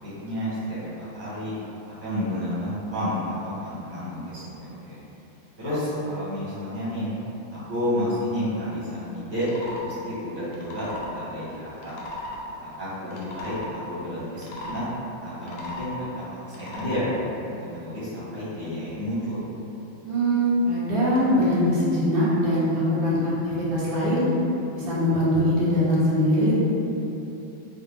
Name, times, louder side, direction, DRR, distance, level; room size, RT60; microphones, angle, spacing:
voice 1, 0.2-1.5 2.0-5.0 5.6-7.1 7.5-9.5 9.8-11.9 12.6-14.8 15.2-16.0 16.5-17.1 17.4-19.4, left 1 dB, 10° right, -12 dB, 0.9 m, -30 dB
sound 1, 9.3-9.9 10.5-11.1 11.8-12.4 13.0-13.7 14.4-14.8 15.4-15.9 16.5-17.0, left 2 dB, 75° left, 1.2 m, -37 dB
voice 2, 20.0-24.3 24.7-26.5, equal, 75° right, -8 dB, 1.3 m, -22 dB
3.6 x 2.1 x 3.6 m, 2.9 s
omnidirectional pair, 2.2 m